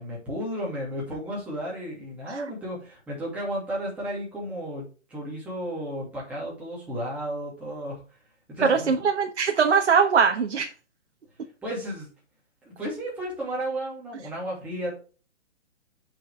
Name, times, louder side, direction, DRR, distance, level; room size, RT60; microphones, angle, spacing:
voice 1, 0.0-8.0 8.5-8.9 11.6-12.1 12.6-14.9, equal, 5° right, -5 dB, 2.4 m, -33 dB
voice 2, 8.6-10.7, right 6 dB, 65° right, 4 dB, 1.2 m, -22 dB
7.3 x 5.7 x 3.3 m, 0.35 s
hypercardioid pair, 170°, 35 cm